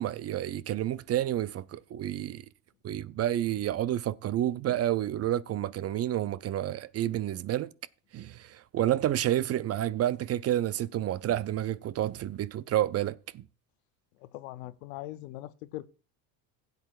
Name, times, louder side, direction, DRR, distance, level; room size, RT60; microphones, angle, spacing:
voice 1, 0.0-2.4 2.8-7.7 8.1-13.4, right 12 dB, 40° right, 0.4 m, -30 dB
voice 2, 14.3-15.9, left 16 dB, 85° left, 0.7 m, -41 dB
16.5 x 8.2 x 2.4 m
supercardioid pair, 80°, 41 cm